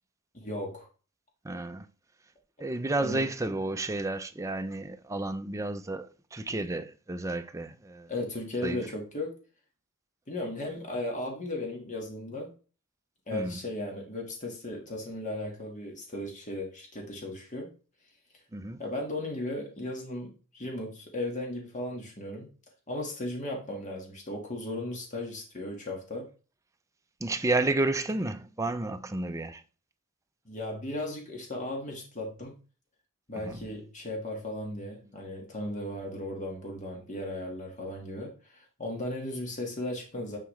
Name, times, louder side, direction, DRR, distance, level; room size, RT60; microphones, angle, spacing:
voice 1, 0.3-0.9 3.0-3.3 8.1-9.3 10.3-12.5 13.3-17.7 18.8-22.5 22.9-26.3 30.4-32.6 33.3-40.4, left 1 dB, 35° left, 1.6 m, -36 dB
voice 2, 1.4-1.9 2.6-8.1 8.6-8.8 13.3-13.6 18.5-18.8 27.2-29.6 33.4-33.6, right 2 dB, 15° right, 0.5 m, -31 dB
9.9 x 4.7 x 3.2 m
head